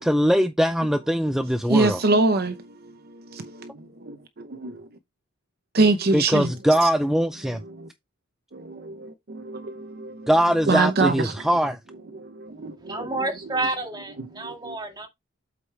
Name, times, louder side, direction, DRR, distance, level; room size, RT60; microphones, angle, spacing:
voice 1, 0.0-2.0 6.1-7.6 10.3-11.8, equal, ahead, 0.4 m, -21 dB
voice 2, 1.6-4.9 5.7-6.5 6.8-6.9 7.5-7.9 8.5-10.3 10.7-11.3 12.1-13.2 13.5-13.6 14.2-14.7, right 3 dB, 50° right, 0.8 m, -25 dB
voice 3, 12.9-15.1, right 2 dB, 20° right, 2.0 m, -29 dB
8.1 x 5.1 x 3.3 m
head